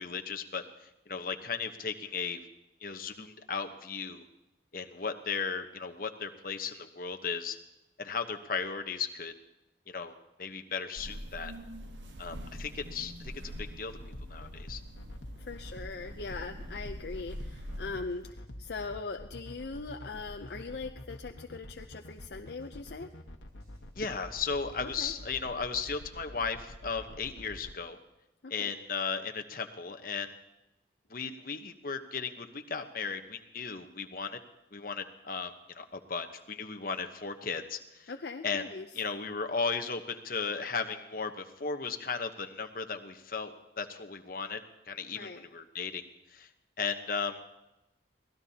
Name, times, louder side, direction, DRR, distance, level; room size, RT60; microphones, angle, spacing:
voice 1, 0.0-2.4 2.8-4.2 4.7-7.6 8.0-9.3 9.9-10.1 10.4-11.5 12.2-14.0 14.3-14.8 23.9-28.0 28.5-30.3 31.1-34.4 34.7-38.1 38.4-38.6 38.9-46.0 46.3-46.5 46.8-47.4, left 5 dB, 50° left, 5 dB, 1.0 m, -36 dB
sound 1, 11.0-17.9, equal, 85° right, 1.3 m, -44 dB
sound 2, 14.0-27.7, left 1 dB, 85° left, 1.3 m, -47 dB
voice 2, 15.4-23.1 24.8-25.1 28.4-28.7 38.1-38.9 45.1-45.5, left 3 dB, 65° left, 5 dB, 0.6 m, -41 dB
sound 3, 17.1-17.2 17.5-18.2 18.5-19.1 19.5-20.2 20.5-21.1 21.5-22.2 22.5-23.1 23.5-24.8, equal, 70° right, 7.6 m, -62 dB
24.0 x 17.5 x 2.9 m, 0.95 s
head